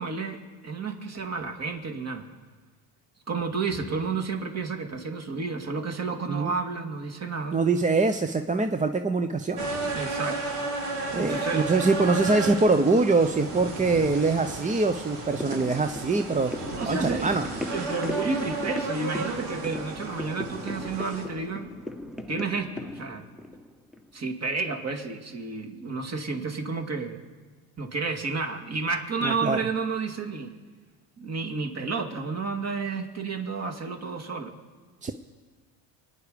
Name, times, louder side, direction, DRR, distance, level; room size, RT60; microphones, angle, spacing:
voice 1, 0.0-2.3 3.3-7.6 9.9-10.4 11.2-11.7 16.7-21.7 22.3-23.2 24.1-27.2 27.8-30.5 31.2-34.6, right 4 dB, 35° right, 4 dB, 2.3 m, -31 dB
voice 2, 7.5-9.7 11.1-16.5 16.9-17.5 29.2-29.6 35.0-35.1, right 3 dB, 15° right, 8 dB, 0.7 m, -24 dB
sound 1, 9.6-21.2, right 2 dB, 85° right, 3.3 m, -33 dB
sound 2, 15.2-24.6 24.9-25.0, left 1 dB, ahead, 1.0 m, -38 dB
24.0 x 9.8 x 5.1 m, 1.4 s
supercardioid pair, 85°, 44 cm